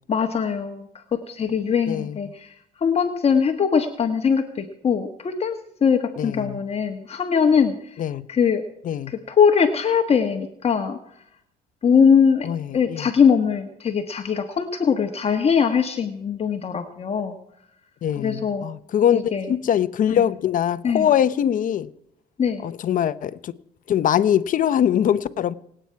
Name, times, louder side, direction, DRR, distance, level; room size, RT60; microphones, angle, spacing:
voice 1, 0.1-2.5 2.8-8.0 8.3-8.6 9.1-11.0 11.8-17.4 18.2-18.7 19.1-19.5 20.1-20.2 20.8-21.1 22.4-22.6, left 6 dB, 35° left, 1.4 m, -21 dB
voice 2, 1.9-2.2 6.2-6.6 8.0-8.3 8.8-9.1 12.4-13.1 18.0-21.9 22.6-23.5 23.9-25.5, left 9 dB, 50° left, 1.0 m, -22 dB
27.0 x 9.1 x 4.7 m
cardioid pair, 110°, 17 cm